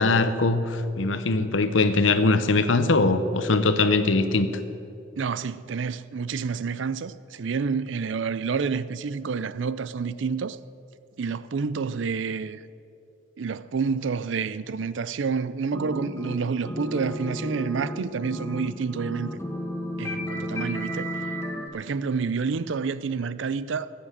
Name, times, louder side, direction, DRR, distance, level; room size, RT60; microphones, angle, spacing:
voice 1, 0.0-4.5, left 3 dB, 85° left, 0.9 m, -21 dB
voice 2, 5.2-10.6 11.2-12.6 13.4-19.3 20.0-21.1 21.7-23.9, right 5 dB, 75° right, 0.5 m, -29 dB
sound 1, 15.7-16.4 16.6-21.7, equal, 15° left, 1.1 m, -33 dB
15.0 x 8.7 x 7.4 m
head